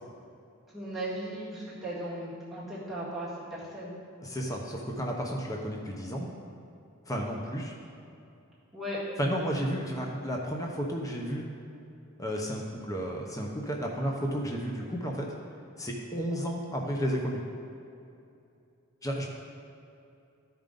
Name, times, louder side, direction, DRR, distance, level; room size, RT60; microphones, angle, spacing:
voice 1, 0.7-3.9 8.7-9.0, right 1 dB, ahead, -9 dB, 1.8 m, -37 dB
voice 2, 4.2-6.3 7.1-7.7 9.2-11.4 12.2-15.3 15.8-17.4 19.0-19.3, equal, 15° left, -1 dB, 0.8 m, -32 dB
13.5 x 5.2 x 3.8 m, 2.6 s
head